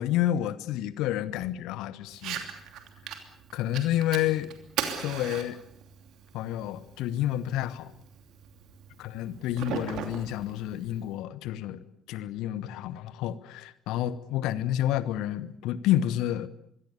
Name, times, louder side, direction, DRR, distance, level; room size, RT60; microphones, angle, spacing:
voice 1, 0.0-2.5 3.5-4.5 5.0-5.6 6.3-7.9 9.1-16.5, left 12 dB, 65° left, 16 dB, 1.2 m, -29 dB
Fire, 2.1-11.1, right 8 dB, 60° right, 2.9 m, -39 dB
25.5 x 22.5 x 6.9 m, 0.70 s
figure-of-eight pair, 45°, 0 cm